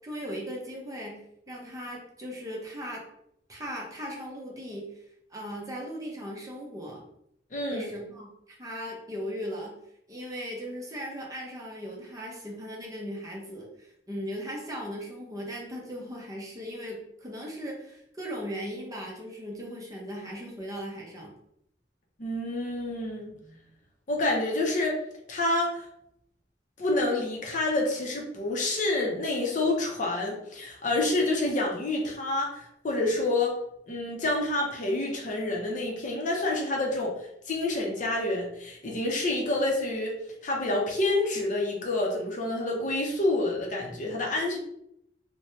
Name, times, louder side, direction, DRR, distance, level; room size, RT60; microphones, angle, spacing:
voice 1, 0.0-3.0 3.5-5.0 5.3-7.0 7.7-9.8 10.1-21.3, equal, 20° right, -2 dB, 0.6 m, -38 dB
voice 2, 7.5-7.9 22.2-23.3 24.1-25.0 25.3-25.8 26.8-33.6 33.9-37.1 37.5-40.1 40.4-44.6, left 2 dB, 45° left, -1 dB, 0.6 m, -28 dB
3.1 x 2.1 x 2.7 m, 0.75 s
head